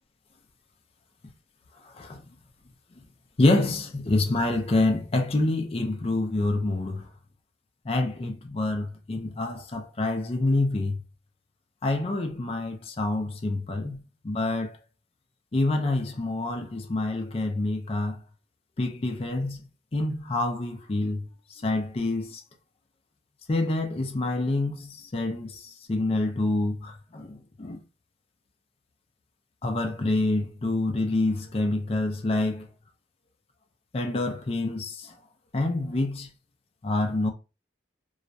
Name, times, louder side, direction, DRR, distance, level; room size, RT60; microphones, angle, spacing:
voice 1, 1.8-2.2 3.4-7.1 7.8-11.0 11.8-14.8 15.5-18.2 18.8-22.4 23.5-27.8 29.6-32.7 33.9-35.1 35.5-36.3 36.8-37.3, left 2 dB, 35° left, 0.4 m, -27 dB
2.3 x 2.1 x 2.6 m
head